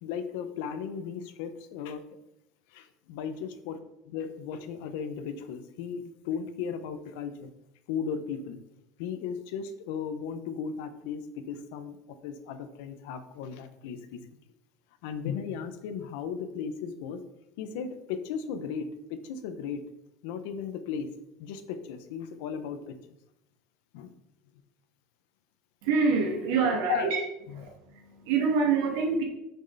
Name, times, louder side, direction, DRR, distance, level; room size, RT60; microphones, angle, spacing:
voice 1, 0.0-2.1 2.7-3.8 4.1-7.5 7.9-8.6 9.0-14.4 15.0-17.2 17.6-19.8 20.2-21.1 21.4-23.1 23.9-24.2 26.9-27.1 27.5-27.6, left 7 dB, 80° left, 10 dB, 0.8 m, -36 dB
voice 2, 25.8-27.2 27.5-29.2, right 5 dB, 80° right, 1 dB, 2.0 m, -26 dB
6.5 x 6.5 x 4.0 m, 0.85 s
cardioid pair, 160°, 0 cm